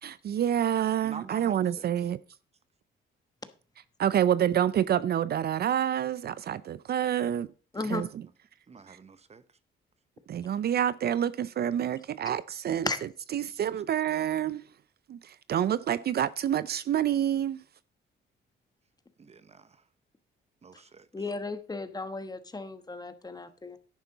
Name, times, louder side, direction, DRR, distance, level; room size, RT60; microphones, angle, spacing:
voice 1, 0.0-2.2 4.0-7.5 7.9-8.1 8.9-9.0 10.3-12.9 13.3-14.6 15.1-17.6, right 10 dB, 55° right, 0.5 m, -27 dB
voice 2, 1.0-1.9 7.7-8.3 8.7-9.4 19.2-19.8 20.6-21.1, right 5 dB, 35° right, 0.9 m, -47 dB
voice 3, 21.1-23.8, left 3 dB, 20° left, 1.2 m, -35 dB
10.5 x 9.3 x 4.0 m
cardioid pair, 90°, 20 cm